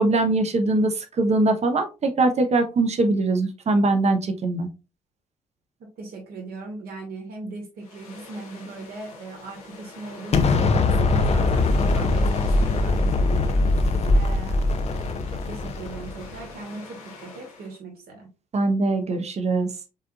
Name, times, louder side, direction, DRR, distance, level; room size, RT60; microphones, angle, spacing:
voice 1, 0.0-4.7 18.5-19.7, right 2 dB, 35° right, 7 dB, 1.0 m, -22 dB
voice 2, 5.8-13.6 14.1-18.3, right 3 dB, 55° right, 1 dB, 2.1 m, -39 dB
sound 1, 7.8-17.8, left 3 dB, 80° left, 1.2 m, -43 dB
Explosion, 10.3-16.3, left 2 dB, 35° left, 0.7 m, -21 dB
5.4 x 3.7 x 2.4 m, 0.30 s
figure-of-eight pair, 50°, 18 cm